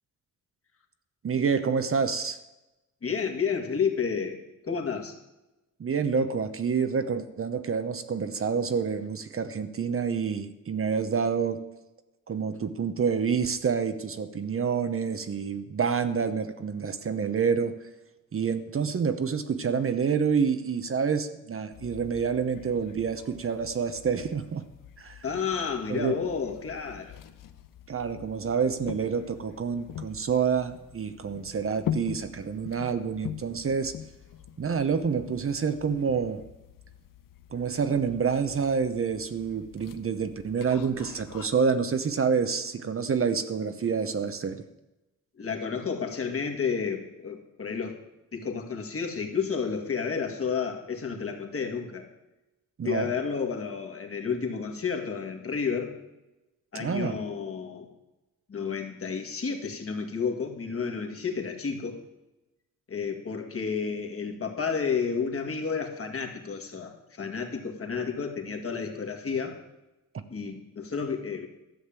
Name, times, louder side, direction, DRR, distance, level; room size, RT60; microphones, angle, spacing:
voice 1, 1.2-2.4 5.8-11.6 12.3-17.8 18.3-24.6 25.0-25.2 25.9-26.2 27.9-33.9 34.6-36.4 37.5-44.6 52.8-53.1 56.7-57.2 70.1-70.2, right 6 dB, 40° right, 10 dB, 0.9 m, -28 dB
voice 2, 3.0-5.1 25.2-27.2 45.4-48.0 48.3-52.1 52.8-55.9 56.7-57.9 58.5-62.0 62.9-69.6 70.3-71.5, left 6 dB, 45° left, 3 dB, 2.1 m, -31 dB
sound 1, 21.7-41.5, left 9 dB, 85° left, 0.8 m, -43 dB
13.0 x 6.5 x 8.9 m, 1.0 s
cardioid pair, 105°, 32 cm